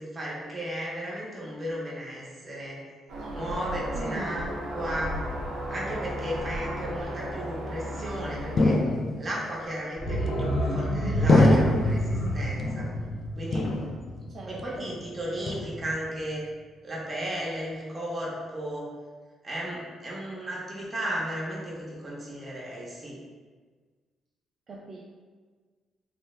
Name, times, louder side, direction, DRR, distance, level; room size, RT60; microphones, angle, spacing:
voice 1, 0.0-2.8 3.3-4.4 4.7-5.2 5.7-8.8 9.2-12.9 13.4-13.7 14.5-16.4 16.8-18.9 19.4-23.2, equal, 30° right, -5 dB, 0.9 m, -34 dB
sound 1, 3.1-8.6, equal, 80° right, 0.8 m, -34 dB
voice 2, 3.9-4.5 10.1-10.4 14.3-14.9 24.7-25.0, right 3 dB, 50° right, -3 dB, 0.3 m, -40 dB
sound 2, 8.6-9.4 10.3-10.8 11.3-12.1 12.6-13.2 13.5-14.3 14.6-15.0 15.5-16.1, left 2 dB, 50° left, 0.3 m, -25 dB
sound 3, 10.0-14.7 15.0-15.1, equal, 80° left, 0.7 m, -28 dB
3.1 x 2.1 x 3.2 m, 1.5 s
cardioid pair, 90°, 0 cm